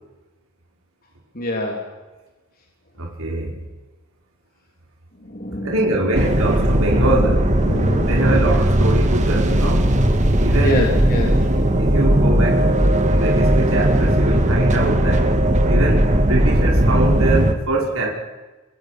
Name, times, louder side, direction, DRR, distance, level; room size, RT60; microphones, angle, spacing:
voice 1, 1.3-1.8 5.2-6.0 7.1-7.3 7.6-8.5 10.6-11.3 11.9-12.0 12.5-12.7, left 1 dB, 45° left, 0 dB, 3.4 m, -26 dB
voice 2, 3.0-3.6 5.6-7.5 8.0-10.0 10.3-11.0 11.8-15.3 15.7-18.1, right 2 dB, 65° right, -2 dB, 5.4 m, -24 dB
sound 1, 6.1-17.5, right 1 dB, 35° right, 2.3 m, -17 dB
30.0 x 25.0 x 6.1 m, 1.2 s
head